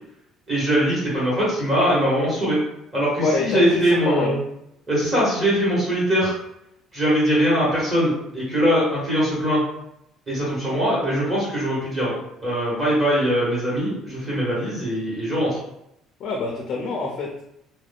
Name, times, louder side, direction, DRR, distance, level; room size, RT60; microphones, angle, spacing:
voice 1, 0.5-2.6 2.9-4.4 4.9-6.3 6.9-9.6 10.3-12.2 12.4-15.6, equal, 25° right, -8 dB, 1.2 m, -21 dB
voice 2, 3.2-4.4 16.2-17.4, left 3 dB, 45° left, -1 dB, 0.4 m, -26 dB
2.4 x 2.1 x 3.4 m, 0.79 s
cardioid pair, 160°, 0 cm